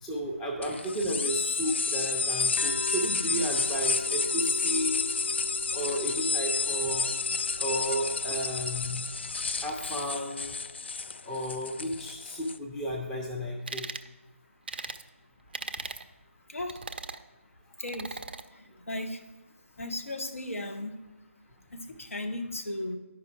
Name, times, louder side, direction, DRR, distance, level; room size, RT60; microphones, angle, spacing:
voice 1, 0.0-5.0 5.7-7.1 7.6-9.1 9.6-10.5 11.3-13.9, equal, 5° left, -2 dB, 0.6 m, -33 dB
sound 1, 0.6-12.6, left 4 dB, 50° left, 0.3 m, -30 dB
sound 2, 2.6-10.1, left 2 dB, 35° left, 1.1 m, -41 dB
sound 3, 13.7-14.1 14.7-15.0 15.5-16.0 16.7-17.2 17.9-18.4, right 4 dB, 45° right, 0.4 m, -38 dB
voice 2, 17.8-18.2 18.9-19.2 19.8-21.0 21.7-23.0, left 1 dB, 70° left, 5 dB, 1.1 m, -35 dB
11.0 x 5.1 x 4.6 m, 1.1 s
figure-of-eight pair, 155°, 8 cm